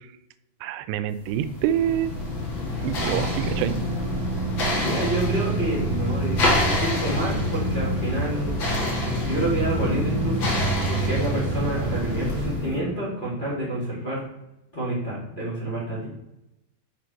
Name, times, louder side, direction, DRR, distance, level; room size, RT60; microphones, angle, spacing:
voice 1, 0.6-2.1 2.8-3.8, right 11 dB, 90° right, 12 dB, 2.7 m, -26 dB
sound 1, 1.2-12.7, left 2 dB, 50° left, 1.4 m, -28 dB
sound 2, 2.8-13.5, right 5 dB, 70° right, 2.0 m, -30 dB
voice 2, 4.7-8.9 9.2-10.5 10.9-14.2 14.7-16.1, right 1 dB, 15° left, -7 dB, 2.2 m, -28 dB
6.8 x 5.9 x 4.4 m, 0.87 s
omnidirectional pair, 4.8 m